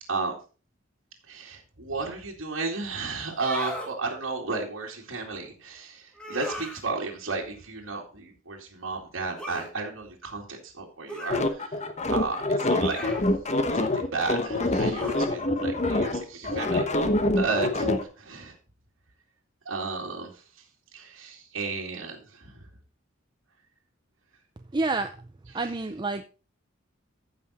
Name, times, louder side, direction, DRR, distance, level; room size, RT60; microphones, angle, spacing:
voice 1, 1.2-13.0 13.7-16.9 17.3-18.6 19.6-20.7 20.9-22.6 25.5-25.7, right 3 dB, 80° right, -2 dB, 2.3 m, -33 dB
sound 1, 3.3-3.9 6.2-6.8 9.4-9.7 11.1-11.5 12.8-13.3 14.9-15.3, equal, 5° left, 1.9 m, -37 dB
sound 2, 11.3-18.0, left 2 dB, 35° left, 1.1 m, -25 dB
voice 2, 24.7-25.1 25.5-26.2, right 3 dB, 25° right, 7 dB, 0.5 m, -28 dB
14.5 x 5.5 x 4.2 m, 0.35 s
head